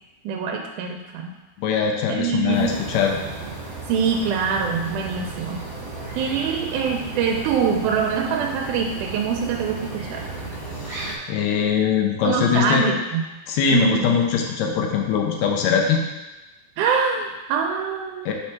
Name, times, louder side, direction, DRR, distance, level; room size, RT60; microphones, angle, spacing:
voice 1, 0.3-1.3 2.1-2.8 3.9-5.6 6.2-10.2 12.2-13.2 13.7-14.1 16.8-18.3, right 6 dB, 80° right, 2 dB, 2.0 m, -24 dB
voice 2, 1.6-3.2 10.7-12.9 13.5-16.0 18.2-18.3, left 7 dB, 75° left, 1 dB, 1.8 m, -22 dB
sound 1, 2.5-11.2, right 3 dB, 60° right, 1.3 m, -34 dB
4.7 x 4.3 x 5.7 m, 1.1 s
omnidirectional pair, 3.7 m